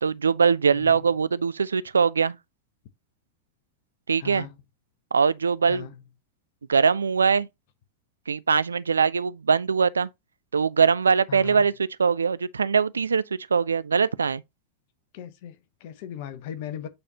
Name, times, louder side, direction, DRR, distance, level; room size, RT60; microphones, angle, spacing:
voice 1, 0.0-2.4 4.1-4.5 5.1-5.9 6.7-7.5 8.3-10.1 10.5-11.7 12.0-13.2 13.5-14.4, right 5 dB, 75° right, 0.4 m, -22 dB
voice 2, 0.7-1.0 4.2-4.6 5.7-6.0 11.3-11.7 15.1-16.9, left 10 dB, 50° left, 0.9 m, -38 dB
8.6 x 4.2 x 2.8 m
figure-of-eight pair, 90°, 0 cm